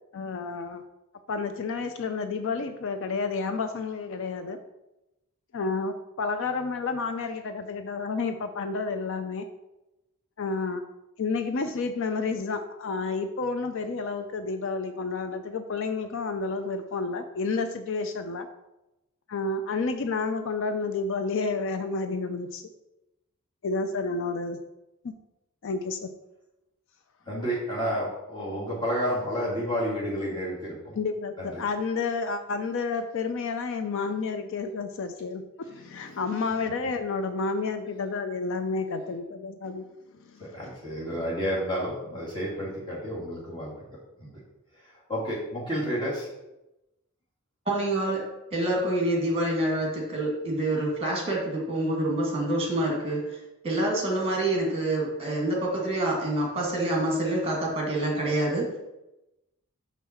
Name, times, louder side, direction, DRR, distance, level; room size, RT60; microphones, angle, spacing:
voice 1, 0.1-0.8 1.3-4.6 5.5-9.5 10.4-10.8 11.2-18.5 19.3-22.6 23.6-24.6 25.0-25.1 25.6-26.1 30.9-39.9 40.3-40.4, left 4 dB, 60° left, 8 dB, 0.5 m, -30 dB
voice 2, 27.3-31.0 31.4-31.6 40.4-43.7 44.2-44.3 44.7-44.8 45.1-46.3, equal, 20° left, -6 dB, 2.3 m, -30 dB
voice 3, 47.7-48.2 48.5-53.4 53.6-58.8, right 1 dB, 25° right, -1 dB, 2.0 m, -27 dB
5.9 x 5.5 x 4.4 m, 0.95 s
head